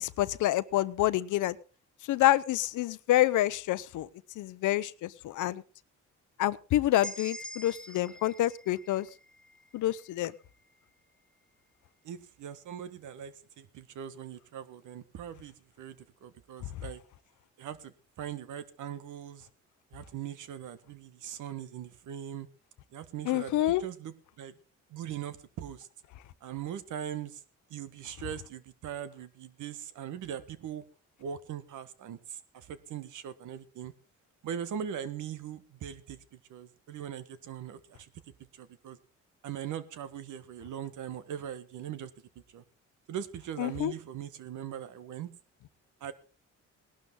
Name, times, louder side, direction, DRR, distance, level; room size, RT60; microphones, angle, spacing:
voice 1, 0.0-1.6 2.1-4.1 4.4-5.6 6.4-9.1 9.7-10.3 23.3-23.8 43.6-43.9, left 14 dB, 80° left, 17 dB, 0.8 m, -27 dB
sound 1, 7.0-10.8, equal, 5° left, 1.4 m, -46 dB
voice 2, 12.0-17.0 17.6-19.5 19.9-22.5 22.9-24.6 24.9-25.9 26.4-27.4 27.7-30.8 31.2-33.9 34.4-38.1 38.5-39.0 39.4-42.1 42.5-42.6 43.1-45.3 46.0-46.1, right 9 dB, 80° right, 13 dB, 1.5 m, -40 dB
18.5 x 12.0 x 3.8 m, 0.34 s
cardioid pair, 90°, 30 cm